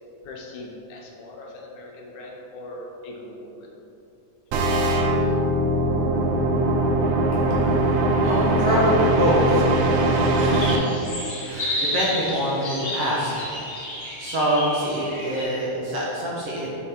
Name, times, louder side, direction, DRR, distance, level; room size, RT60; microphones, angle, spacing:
voice 1, 0.2-3.5, left 2 dB, 80° left, -1 dB, 2.1 m, -40 dB
sound 1, 4.5-10.8, right 1 dB, 80° right, 2.0 m, -21 dB
voice 2, 7.3-13.6 13.8-16.7, equal, 65° right, -6 dB, 1.7 m, -26 dB
sound 2, 10.2-15.4, left 1 dB, 40° left, 1.2 m, -31 dB
5.7 x 4.9 x 4.3 m, 2.8 s
omnidirectional pair, 3.5 m